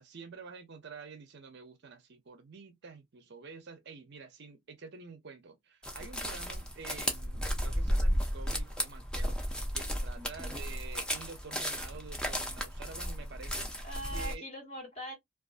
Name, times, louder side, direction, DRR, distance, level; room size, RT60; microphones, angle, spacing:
voice 1, 0.0-14.4, right 5 dB, 50° right, 0.5 m, -48 dB
sound 1, 5.8-14.3, equal, 5° left, 0.4 m, -34 dB
voice 2, 10.2-10.6 13.8-15.1, equal, 30° left, 1.5 m, -42 dB
2.4 x 2.3 x 2.4 m
head